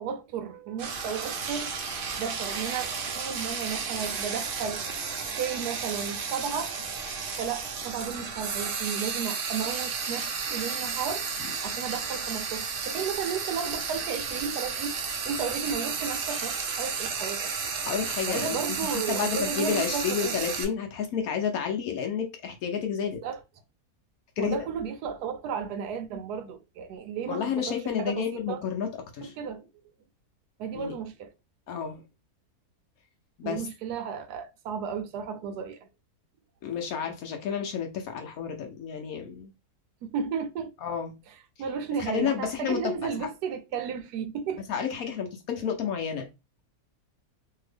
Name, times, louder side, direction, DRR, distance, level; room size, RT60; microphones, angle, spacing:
voice 1, 0.0-1.7 2.2-4.8 5.1-6.7 7.4-11.2 11.6-15.0 15.2-17.5 18.3-20.4 23.2-23.4 24.4-28.6 29.2-29.7 30.6-31.3 33.4-35.9 40.0-40.7 41.6-44.6, right 6 dB, 85° right, 1.2 m, -34 dB
Frying (food), 0.8-20.6, right 5 dB, 70° right, 0.5 m, -33 dB
voice 2, 17.8-23.2 24.4-24.5 27.3-28.9 29.1-29.3 30.7-30.9 31.7-32.0 33.4-33.7 36.6-39.5 40.8-41.1 42.0-43.3 44.7-46.3, left 7 dB, 70° left, 1.0 m, -31 dB
2.7 x 2.7 x 3.2 m
omnidirectional pair, 1.7 m